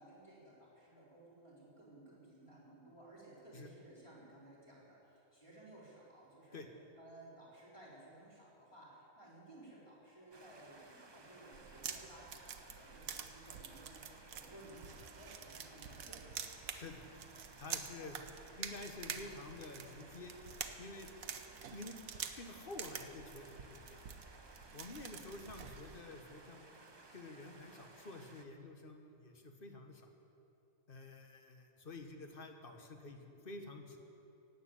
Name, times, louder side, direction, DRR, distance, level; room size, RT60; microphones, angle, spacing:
voice 1, 0.0-6.6 7.0-16.8 18.0-18.2 25.1-25.3, right 1 dB, 20° left, -6 dB, 4.1 m, -57 dB
sound 1, 10.3-28.4, right 2 dB, 20° right, 0.9 m, -59 dB
sound 2, 11.5-26.0, right 7 dB, 75° right, 1.3 m, -48 dB
voice 2, 16.7-17.0 17.6-18.2 18.6-20.4 20.8-21.1 21.7-21.9 22.4-24.0 24.7-26.6 27.1-30.1 30.9-34.0, left 2 dB, 40° left, 5 dB, 1.4 m, -50 dB
16.0 x 8.1 x 9.7 m, 2.8 s
omnidirectional pair, 1.5 m